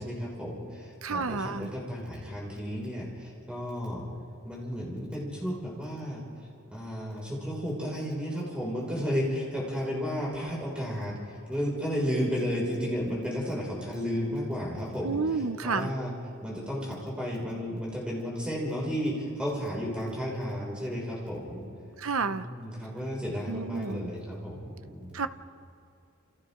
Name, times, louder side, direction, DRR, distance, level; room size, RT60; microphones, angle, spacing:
voice 1, 0.0-4.0 4.4-6.2 6.7-16.1 16.4-21.6 22.2-25.3, equal, 5° right, -4 dB, 6.0 m, -33 dB
voice 2, 1.0-1.7 15.0-15.9 22.0-22.4 23.5-24.1 25.1-25.3, right 4 dB, 65° right, 11 dB, 0.8 m, -30 dB
29.0 x 28.5 x 3.9 m, 2.5 s
head